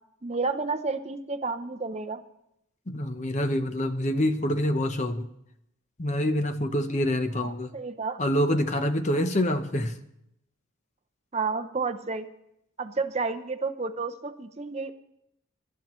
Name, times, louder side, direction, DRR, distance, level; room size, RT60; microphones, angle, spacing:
voice 1, 0.2-2.2 7.4-8.2 11.3-12.3 12.8-14.9, right 4 dB, 30° right, 7 dB, 0.6 m, -31 dB
voice 2, 2.9-5.3 6.0-7.7 8.2-10.0, left 1 dB, 35° left, 8 dB, 0.8 m, -26 dB
23.5 x 12.0 x 3.1 m, 0.81 s
head